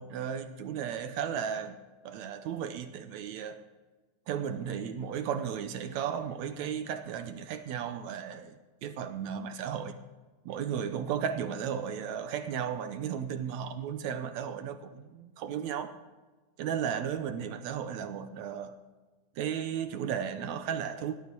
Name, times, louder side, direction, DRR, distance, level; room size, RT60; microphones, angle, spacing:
voice 1, 0.0-1.8 2.0-3.6 4.3-10.0 10.5-16.0 16.6-18.8 19.4-21.1, right 8 dB, 75° right, 9 dB, 1.8 m, -35 dB
18.0 x 11.5 x 4.6 m, 1.3 s
omnidirectional pair, 3.8 m